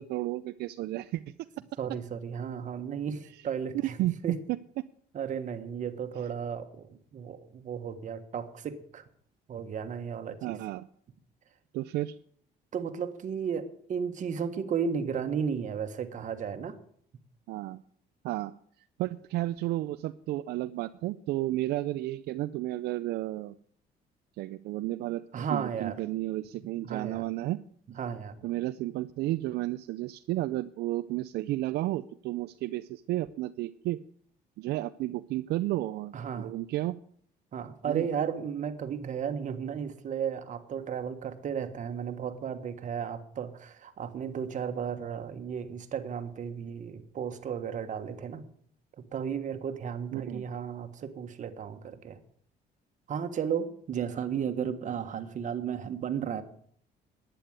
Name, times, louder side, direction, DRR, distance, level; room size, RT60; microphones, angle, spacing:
voice 1, 0.0-1.3 4.0-4.4 10.4-10.9 11.7-12.2 17.5-17.8 18.2-18.5 19.0-23.6 24.4-25.2 25.5-27.6 28.4-34.0 34.6-37.0 37.9-38.1 50.1-50.4, right 16 dB, 75° right, 12 dB, 0.5 m, -32 dB
voice 2, 1.8-4.4 5.1-9.0 9.5-10.6 12.7-16.8 25.3-26.0 26.8-27.2 27.9-28.4 36.1-36.5 37.5-48.5 49.0-52.2 53.1-56.4, right 7 dB, 50° right, 8 dB, 1.5 m, -34 dB
11.5 x 9.3 x 8.1 m, 0.62 s
cardioid pair, 110°, 17 cm